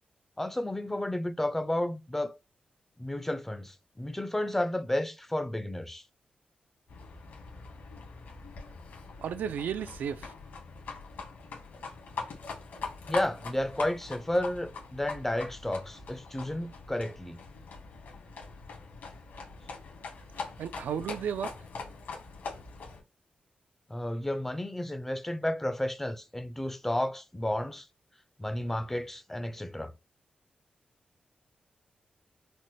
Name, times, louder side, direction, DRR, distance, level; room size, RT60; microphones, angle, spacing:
voice 1, 0.4-2.4 3.0-6.0 13.1-17.4 23.9-27.9 28.4-29.9, left 1 dB, 10° left, 0.3 m, -32 dB
Livestock farm animals working animals, 6.9-23.0, left 4 dB, 80° left, 1.4 m, -43 dB
voice 2, 9.2-10.3 20.6-21.5, right 8 dB, 90° right, 0.3 m, -33 dB
4.0 x 2.1 x 3.0 m
wide cardioid pair, 140°, 3 cm